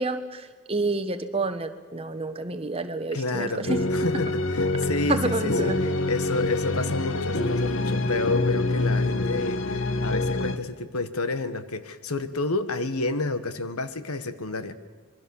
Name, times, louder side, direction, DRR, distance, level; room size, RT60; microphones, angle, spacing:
voice 1, 0.0-3.8 5.1-6.0, right 2 dB, 25° right, 7 dB, 1.2 m, -29 dB
voice 2, 3.1-14.7, left 3 dB, 85° left, 12 dB, 1.4 m, -30 dB
sound 1, 3.7-10.6, left 2 dB, 60° left, 1.3 m, -26 dB
26.5 x 22.0 x 7.1 m, 1.4 s
head